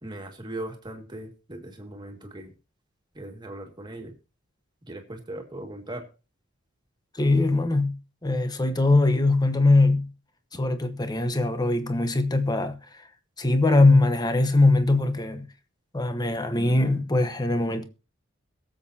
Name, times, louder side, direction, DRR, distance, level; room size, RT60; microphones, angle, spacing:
voice 1, 0.0-2.5 3.2-4.1 4.9-6.0, right 1 dB, 20° right, 2.0 m, -38 dB
voice 2, 7.1-10.1 10.5-13.1 13.4-15.5 15.9-17.8, left 2 dB, 20° left, 1.0 m, -22 dB
22.0 x 7.7 x 2.8 m
head